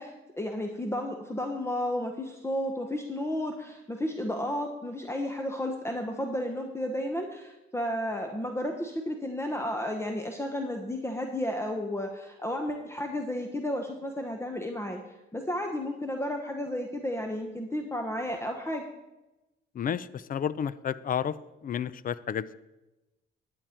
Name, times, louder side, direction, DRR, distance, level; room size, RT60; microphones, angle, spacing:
voice 1, 0.0-15.0 15.3-18.8, left 1 dB, 15° left, 3 dB, 1.0 m, -32 dB
voice 2, 19.8-21.3 21.6-22.5, left 8 dB, 45° left, 17 dB, 0.5 m, -31 dB
11.0 x 8.7 x 4.4 m, 1.0 s
cardioid pair, 90°, 20 cm